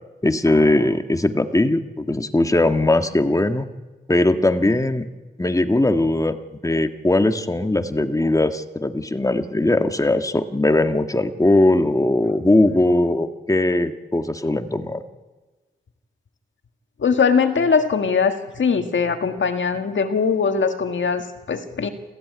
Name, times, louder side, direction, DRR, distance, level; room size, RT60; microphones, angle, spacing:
voice 1, 0.2-3.6 4.1-5.1 5.4-15.0, left 2 dB, 15° left, 7 dB, 1.6 m, -19 dB
voice 2, 17.0-21.9, left 5 dB, 85° left, 7 dB, 1.9 m, -21 dB
28.0 x 14.5 x 9.6 m, 1.2 s
wide cardioid pair, 70°, 19 cm